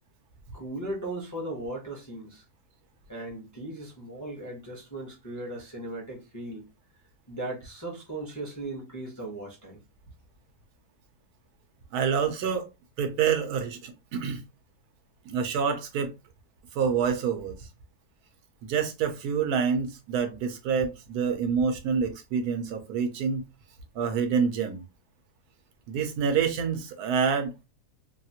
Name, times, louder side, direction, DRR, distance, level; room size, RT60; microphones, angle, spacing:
voice 1, 0.5-2.4 3.1-6.6 7.3-9.8, right 1 dB, 20° left, 0.5 m, -37 dB
voice 2, 11.9-12.7 13.0-14.4 15.3-16.1 16.7-17.6 18.7-23.4 24.0-24.8 25.9-27.5, right 6 dB, 85° right, 1.2 m, -27 dB
2.9 x 2.4 x 2.8 m
omnidirectional pair, 1.6 m